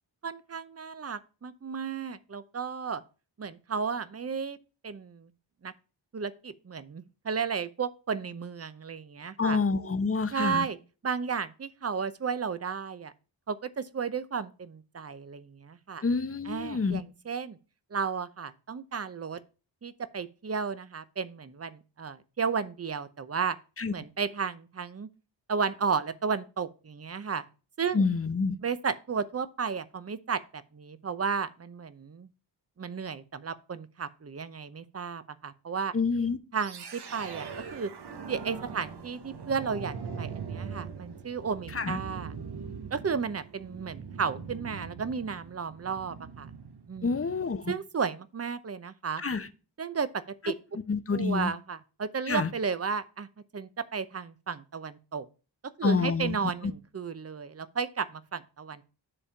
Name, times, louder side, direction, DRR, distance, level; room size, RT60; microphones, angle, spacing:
voice 1, 0.2-3.0 3.4-4.6 4.8-5.3 5.6-5.7 6.1-9.6 10.3-10.8 11.0-13.1 13.5-16.0 16.4-17.6 17.9-19.4 19.8-23.6 23.9-25.1 25.5-27.5 27.8-28.1 28.6-32.3 32.8-35.9 36.5-37.9 38.3-42.3 42.9-46.5 46.9-47.2 47.7-49.2 49.8-50.6 51.1-53.3 53.5-55.3 55.8-58.8, right 6 dB, 35° right, 0.7 m, -33 dB
voice 2, 9.4-10.7 16.0-17.0 23.8-23.9 27.9-28.6 35.9-36.4 41.7-42.0 47.0-47.7 49.2-49.5 50.9-51.5 52.3-52.5 55.8-56.4, left 4 dB, 30° left, 0.8 m, -27 dB
sound 1, 36.6-47.7, right 6 dB, 60° right, 1.0 m, -41 dB
9.8 x 3.5 x 5.6 m
cardioid pair, 60°, 44 cm